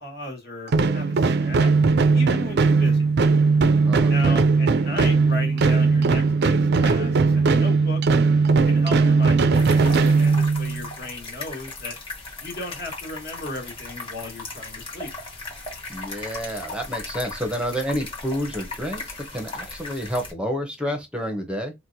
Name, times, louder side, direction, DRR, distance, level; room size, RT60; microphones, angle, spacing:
voice 1, 0.0-1.7 2.1-3.1 4.1-8.0 8.6-12.0 12.4-15.1, left 2 dB, 50° left, 1.4 m, -36 dB
sound 1, 0.7-10.9, right 4 dB, 55° right, 0.4 m, -19 dB
voice 2, 3.8-4.5 15.9-21.7, equal, 5° right, 0.6 m, -29 dB
sound 2, 9.5-20.3, left 3 dB, 25° left, 1.2 m, -37 dB
4.3 x 2.1 x 2.5 m
head